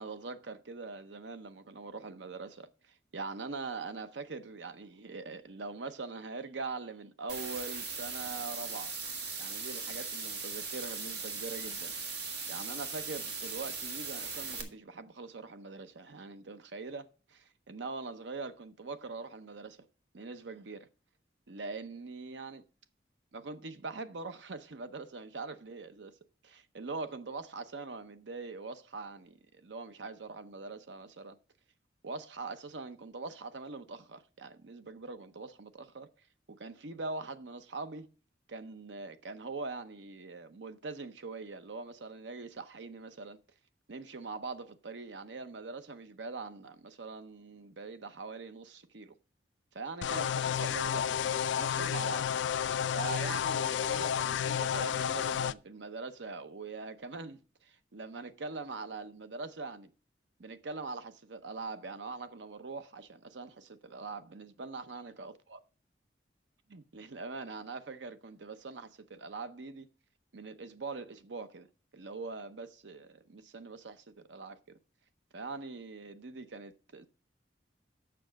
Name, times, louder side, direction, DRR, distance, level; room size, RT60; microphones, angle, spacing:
voice 1, 0.0-9.0 9.4-11.9 12.5-19.9 20.1-20.9 21.5-22.6 23.3-26.2 26.4-31.4 32.0-36.1 36.5-38.1 38.5-43.4 43.9-49.2 49.7-52.3 52.9-59.9 60.4-65.6 66.7-69.9 70.3-71.7 71.9-74.6 75.3-77.1, right 3 dB, 90° right, 0.8 m, -43 dB
sound 1, 7.3-14.6, right 4 dB, 70° right, 1.7 m, -39 dB
sound 2, 50.0-55.5, left 8 dB, 90° left, 0.3 m, -31 dB
6.9 x 6.1 x 6.3 m
head